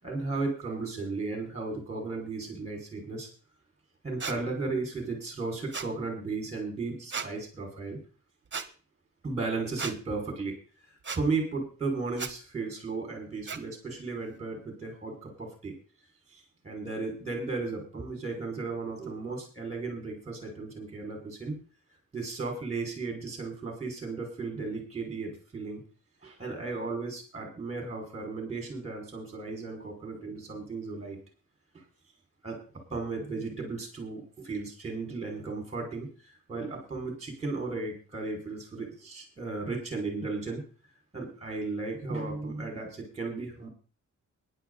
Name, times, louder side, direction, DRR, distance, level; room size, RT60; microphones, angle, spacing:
voice 1, 0.0-3.3 4.0-8.0 9.2-10.5 11.1-15.7 16.3-21.6 22.1-25.8 26.2-31.2 32.4-32.6 32.9-40.6 41.1-43.7, right 3 dB, 20° right, 2 dB, 5.6 m, -35 dB
sound 1, 4.2-4.4 5.7-5.9 7.1-7.3 8.5-8.7 9.8-10.0 11.0-11.2 12.2-12.3 13.5-13.6, right 5 dB, 35° right, 1.4 m, -35 dB
16.0 x 10.5 x 4.1 m, 0.37 s
wide cardioid pair, 130°, 31 cm